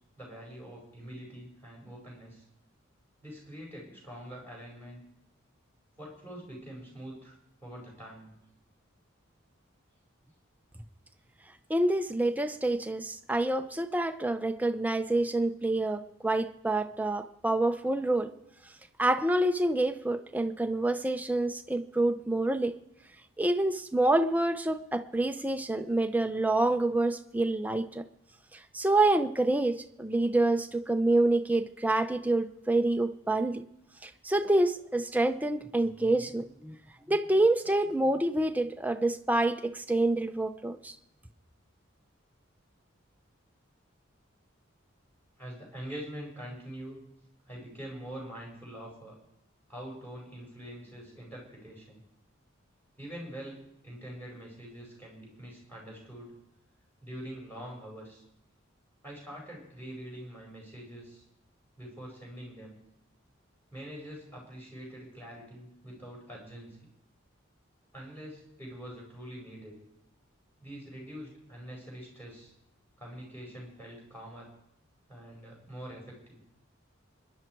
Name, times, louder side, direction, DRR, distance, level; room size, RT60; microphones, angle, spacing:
voice 1, 0.2-2.4 3.2-5.0 6.0-7.4 7.6-8.3 45.4-47.0 47.5-49.2 49.7-52.0 53.0-56.3 57.0-58.2 59.0-61.2 61.8-62.8 63.7-66.8 67.9-69.7 70.6-72.5 73.0-74.5 75.1-76.4, equal, 10° left, -3 dB, 5.4 m, -44 dB
voice 2, 11.7-18.3 19.0-22.8 23.4-28.0 28.5-33.6 34.0-36.8 37.1-41.0, right 2 dB, 10° right, 7 dB, 0.7 m, -27 dB
26.5 x 11.0 x 4.7 m, 0.82 s
head